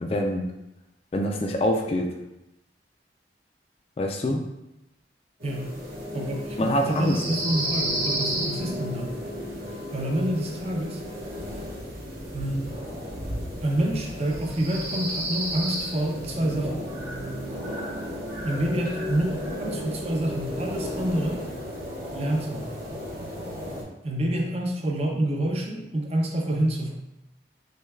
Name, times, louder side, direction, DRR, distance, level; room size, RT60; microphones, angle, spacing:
voice 1, 0.0-0.5 1.1-2.1 4.0-4.4 6.6-7.2, left 1 dB, 35° left, 3 dB, 0.3 m, -25 dB
voice 2, 5.4-5.7 6.1-9.1 9.9-11.0 12.3-12.8 13.6-16.9 18.4-21.4 22.1-22.7 24.0-26.9, right 1 dB, 35° right, 0 dB, 0.5 m, -27 dB
sound 1, 5.4-23.8, equal, 55° right, 1.1 m, -33 dB
6.1 x 2.2 x 2.3 m, 0.88 s
head